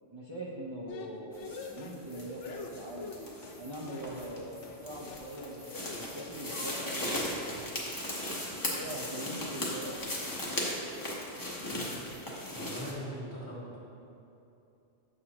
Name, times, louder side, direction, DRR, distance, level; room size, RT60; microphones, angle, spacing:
voice 1, 0.1-3.1 3.6-7.4 8.7-10.0, right 1 dB, 35° right, -5 dB, 0.5 m, -42 dB
sound 1, 0.9-3.6 3.9-4.4 4.6-4.8 5.1-7.2 8.2-8.4 8.7-9.2 9.4-9.6 9.9-10.4, left 4 dB, 85° left, 0.9 m, -46 dB
sound 2, 1.3-12.9, left 1 dB, 20° left, 0.9 m, -38 dB
voice 2, 12.5-13.8, equal, 45° left, -6 dB, 1.8 m, -41 dB
7.3 x 6.3 x 2.9 m, 2.8 s
omnidirectional pair, 1.2 m